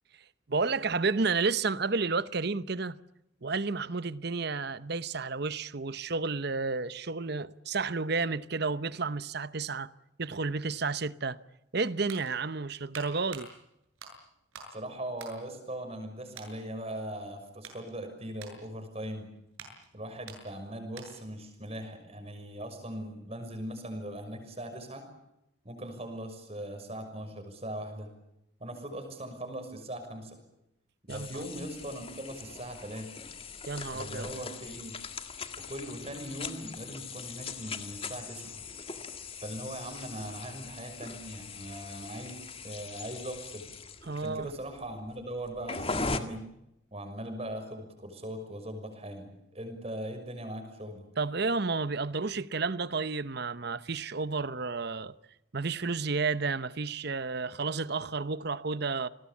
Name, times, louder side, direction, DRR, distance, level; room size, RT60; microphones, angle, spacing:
voice 1, 0.5-3.0 3.4-9.9 10.2-11.4 11.7-13.5 31.1-31.5 33.7-34.3 44.1-44.5 51.2-55.1 55.5-59.1, right 4 dB, 55° right, 0.9 m, -31 dB
sound 1, 11.6-14.8 15.1-16.0 16.3-16.6 17.1-21.4 21.7-21.8, right 5 dB, 85° right, 8.0 m, -49 dB
voice 2, 14.7-19.3 19.9-25.1 25.6-28.1 28.6-30.4 31.0-33.2 33.9-35.0 35.6-38.6 39.4-43.7 44.1-46.5 46.9-51.1, right 1 dB, 30° right, 6.2 m, -40 dB
sound 2, 31.1-46.2, left 4 dB, 25° left, 1.8 m, -40 dB
29.5 x 20.5 x 8.5 m
head